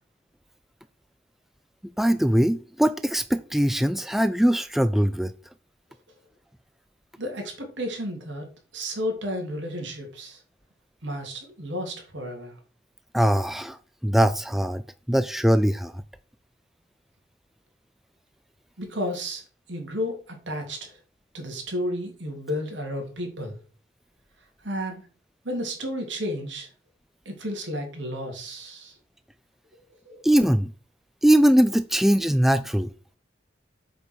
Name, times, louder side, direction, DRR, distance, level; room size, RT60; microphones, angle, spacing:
voice 1, 2.0-5.3 13.1-13.8 14.0-14.8 15.1-15.9 30.2-30.7 31.2-32.9, equal, ahead, 0.3 m, -21 dB
voice 2, 7.2-10.4 11.0-12.6 18.8-19.4 19.7-21.0 21.3-23.6 24.6-25.1 25.4-26.7 27.2-29.0 30.0-30.3, equal, 75° right, 3.2 m, -32 dB
8.3 x 5.5 x 6.4 m
head